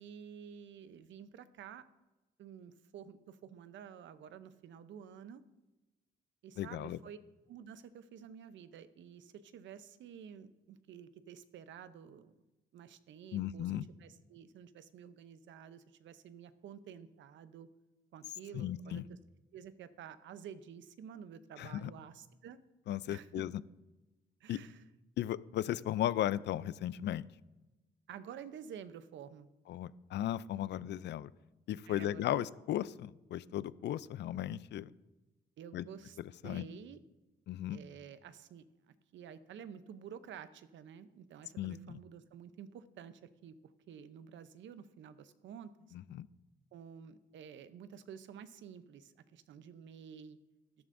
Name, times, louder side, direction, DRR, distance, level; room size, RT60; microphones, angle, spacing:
voice 1, 0.0-1.9 2.4-5.4 6.4-7.2 7.5-12.4 12.7-13.7 14.0-17.7 18.1-19.2 19.5-22.6 23.1-23.4 24.4-24.8 28.1-29.5 31.9-32.5 35.6-36.2 36.4-37.0 37.7-45.7 46.7-50.4, right 8 dB, 70° right, 13 dB, 0.7 m, -51 dB
voice 2, 6.6-7.0 13.3-13.8 18.5-19.0 21.6-21.9 22.9-23.5 24.5-24.6 25.2-27.3 29.7-31.3 31.7-34.9 35.7-35.8 36.4-36.7 37.5-37.8 41.6-42.0 45.9-46.3, left 12 dB, 60° left, 18 dB, 0.4 m, -36 dB
13.0 x 11.0 x 2.6 m, 1.1 s
cardioid pair, 90°, 20 cm